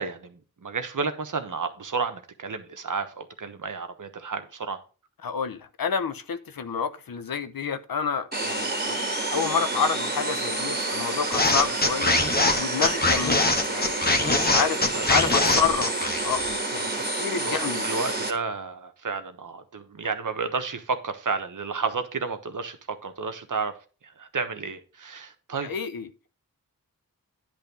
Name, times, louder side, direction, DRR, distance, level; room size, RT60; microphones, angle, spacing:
voice 1, 0.0-4.8 14.1-14.6 14.9-15.1 15.4-15.5 16.9-17.2 17.4-23.7 24.0-25.7, right 4 dB, 60° right, 1.2 m, -32 dB
voice 2, 5.2-9.0 9.3-12.2 12.5-15.9 16.2-16.4 16.7-17.9 25.6-26.1, left 6 dB, 75° left, 0.9 m, -29 dB
sound 1, 8.3-18.3, right 2 dB, 25° right, 2.1 m, -29 dB
sound 2, 11.3-16.6, left 2 dB, 25° left, 1.2 m, -23 dB
10.0 x 3.5 x 6.9 m
wide cardioid pair, 70°, 35 cm